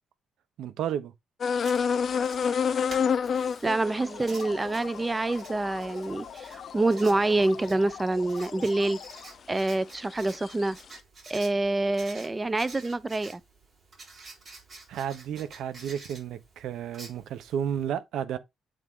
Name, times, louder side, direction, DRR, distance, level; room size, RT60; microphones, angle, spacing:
voice 1, 0.6-1.1 14.9-18.4, right 9 dB, 80° right, 0.9 m, -32 dB
sound 1, 1.4-7.8 8.4-9.2 9.6-10.7, left 6 dB, 50° left, 0.5 m, -30 dB
Writing, 1.5-17.9, right 3 dB, 40° right, 3.8 m, -50 dB
voice 2, 3.3-9.0 9.5-10.8 11.3-13.4, right 2 dB, 20° right, 0.5 m, -27 dB
sound 2, 3.7-9.4, left 8 dB, 70° left, 0.8 m, -44 dB
8.0 x 3.7 x 3.7 m
cardioid pair, 90°, 0 cm